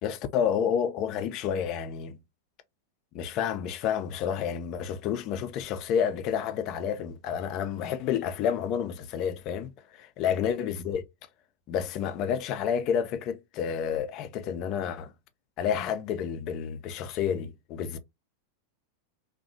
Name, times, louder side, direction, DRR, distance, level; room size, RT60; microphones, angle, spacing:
voice 1, 0.0-2.2 3.1-11.0 11.7-15.1 15.6-18.0, left 8 dB, 40° left, 0.3 m, -30 dB
2.6 x 2.1 x 2.6 m
figure-of-eight pair, 90°, 0 cm